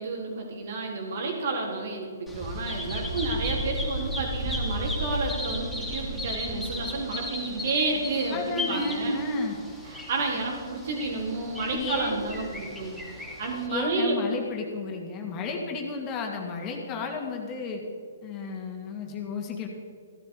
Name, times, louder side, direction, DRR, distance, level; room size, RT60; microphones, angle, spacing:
voice 1, 0.0-9.1 9.9-13.0 13.4-14.2, right 3 dB, 55° right, 0 dB, 4.2 m, -30 dB
Bird vocalization bird call bird song, 2.3-13.7, equal, ahead, 3.1 m, -34 dB
voice 2, 8.3-9.6 11.7-12.2 13.7-17.8 18.2-19.7, left 3 dB, 25° left, 1 dB, 2.5 m, -32 dB
15.5 x 11.5 x 5.0 m, 2.3 s
hypercardioid pair, 140°, 0 cm